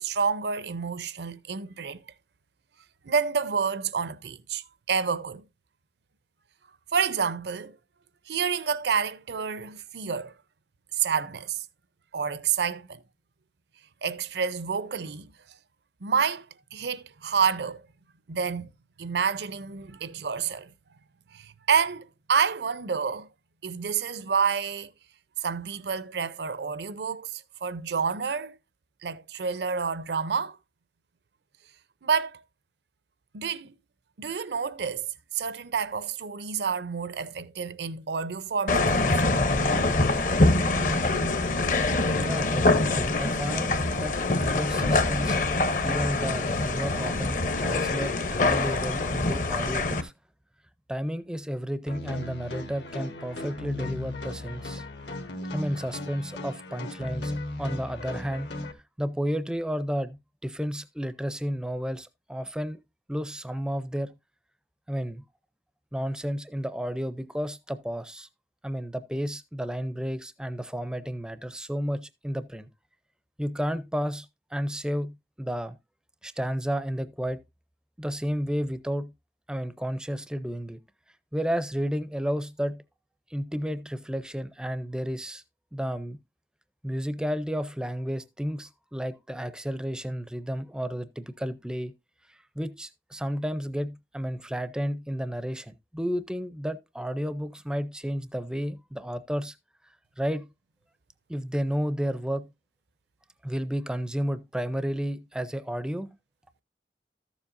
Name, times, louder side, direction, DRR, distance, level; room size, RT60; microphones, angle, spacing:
voice 1, 0.0-2.0 3.0-5.4 6.9-7.8 8.3-10.3 10.9-11.7 12.1-13.0 14.0-15.3 16.0-16.5 16.7-17.8 18.3-18.7 19.0-20.7 21.3-23.3 23.6-24.9 25.4-28.6 29.0-30.6 32.0-32.4 33.3-33.7 34.2-35.1 35.3-39.3, right 6 dB, 75° right, 0.6 m, -29 dB
sound 1, 38.7-50.0, left 2 dB, 45° left, 0.7 m, -24 dB
voice 2, 42.2-45.4 45.8-50.1 50.9-54.8 55.5-58.5 59.0-62.8 63.1-64.1 64.9-65.2 65.9-68.3 68.6-72.7 73.4-75.8 76.2-77.4 78.0-79.1 79.5-80.8 81.3-82.8 83.3-85.4 85.7-86.2 86.8-91.9 92.3-99.6 100.2-100.5 101.3-102.5 103.4-106.1, equal, 5° right, 0.4 m, -32 dB
sound 2, 51.9-58.7, left 2 dB, 80° left, 1.5 m, -36 dB
13.5 x 7.2 x 2.5 m
head